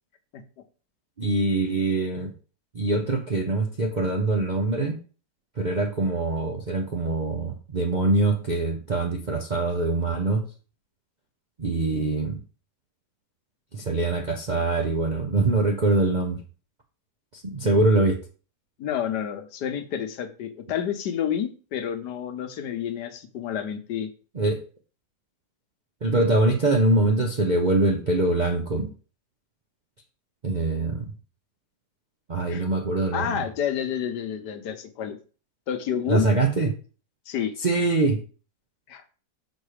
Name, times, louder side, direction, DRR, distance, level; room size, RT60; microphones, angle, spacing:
voice 1, 1.2-2.3 2.7-5.0 5.6-10.5 11.6-12.4 13.7-16.4 17.3-18.2 24.3-24.6 26.0-28.9 30.4-31.1 32.3-33.4 36.1-36.7 37.6-38.2, right 2 dB, 50° right, 3 dB, 0.5 m, -23 dB
voice 2, 18.8-24.1 32.5-32.6 33.1-35.2 35.7-36.3 37.3-37.5 38.9-39.1, left 9 dB, 70° left, 9 dB, 1.4 m, -29 dB
6.3 x 4.4 x 4.9 m, 0.37 s
omnidirectional pair, 1.9 m